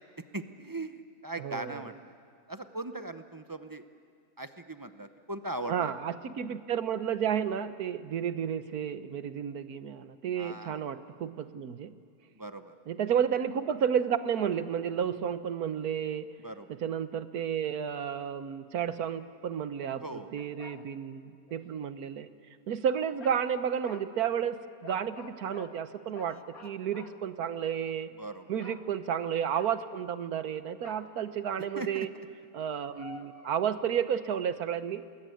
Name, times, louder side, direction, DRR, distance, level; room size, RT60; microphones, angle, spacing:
voice 1, 0.2-2.1 2.5-3.8 4.4-6.1 10.4-10.8 12.3-12.7 16.4-16.8 20.0-20.4 26.3-26.4 28.2-28.5 31.8-32.1, right 2 dB, 25° right, 9 dB, 0.4 m, -40 dB
voice 2, 1.4-1.8 5.7-11.9 12.9-16.3 16.8-20.0 20.3-22.3 22.7-28.1 28.5-32.1 32.5-35.0, right 8 dB, 70° right, 12 dB, 1.4 m, -32 dB
sound 1, 20.4-20.9 21.5-21.6 23.2-23.5 23.8-24.1 24.8-25.7 26.1-27.8 28.6-28.9 29.5-30.0 30.8-31.1 32.7-33.6, left 5 dB, 65° left, 2.1 m, -50 dB
27.5 x 20.5 x 9.3 m, 2.2 s
omnidirectional pair, 1.7 m